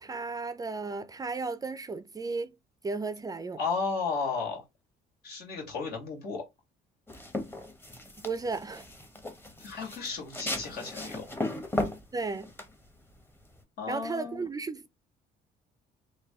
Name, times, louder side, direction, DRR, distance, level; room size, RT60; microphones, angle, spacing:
voice 1, 0.0-2.5 2.8-3.6 8.2-8.8 12.1-12.5 13.9-14.9, right 4 dB, 20° right, 0.4 m, -34 dB
voice 2, 3.6-4.6 5.2-6.4 9.6-11.2 13.8-14.5, left 4 dB, 70° left, 2.0 m, -34 dB
sound 1, 7.1-13.6, left 1 dB, 15° left, 0.9 m, -36 dB
3.4 x 2.6 x 3.5 m
cardioid pair, 110°, 17 cm